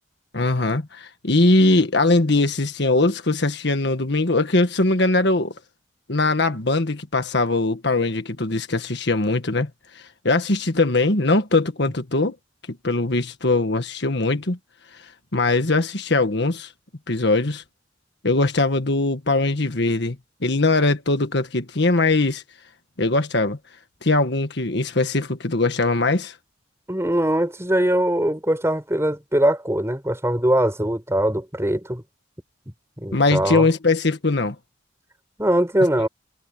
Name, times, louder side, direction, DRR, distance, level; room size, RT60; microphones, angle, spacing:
voice 1, 0.3-5.5 6.1-9.7 10.2-12.3 12.8-14.6 15.3-16.7 17.1-17.6 18.2-20.2 20.4-22.4 23.0-23.6 24.0-26.3 33.1-34.5, left 2 dB, 65° left, 1.6 m, -21 dB
voice 2, 26.9-32.0 33.0-33.7 35.4-36.1, right 1 dB, 15° right, 5.2 m, -21 dB
head